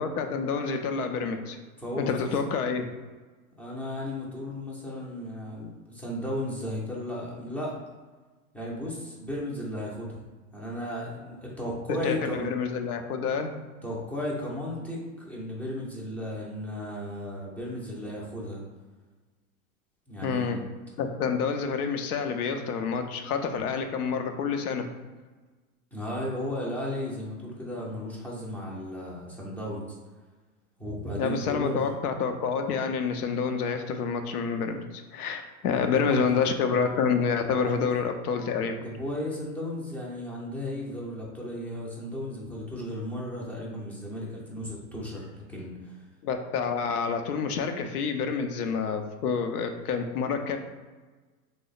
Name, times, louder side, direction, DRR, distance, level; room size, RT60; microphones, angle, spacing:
voice 1, 0.0-1.6 2.0-2.8 12.0-13.5 20.2-20.6 21.0-24.9 31.2-38.8 46.2-50.6, left 5 dB, 85° left, 6 dB, 0.6 m, -28 dB
voice 2, 1.8-2.4 3.6-7.7 8.5-10.2 10.5-12.5 13.8-18.6 20.1-20.6 25.9-30.0 30.8-31.9 35.7-36.2 37.7-37.8 38.8-46.0, left 1 dB, 5° left, -5 dB, 0.4 m, -35 dB
3.0 x 2.1 x 4.0 m, 1.3 s
hypercardioid pair, 120°, 44 cm